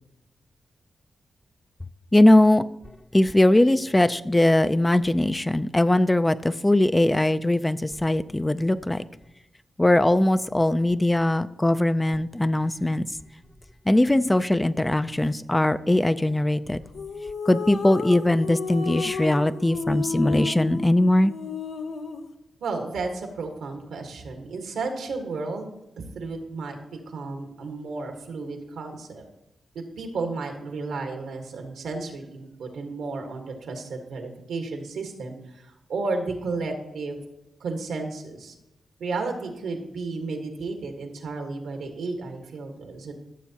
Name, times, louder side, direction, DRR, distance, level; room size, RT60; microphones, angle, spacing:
voice 1, 2.1-2.6 3.1-9.0 9.8-13.1 13.9-16.8 17.5-21.3, left 1 dB, 15° left, 12 dB, 0.4 m, -20 dB
sound 1, 16.9-22.3, left 4 dB, 70° left, 0.7 m, -32 dB
voice 2, 22.6-29.2 29.7-37.2 37.6-38.5 39.0-43.1, right 3 dB, 90° right, 4 dB, 1.5 m, -33 dB
14.0 x 6.9 x 2.9 m, 0.93 s
cardioid pair, 60°, 0 cm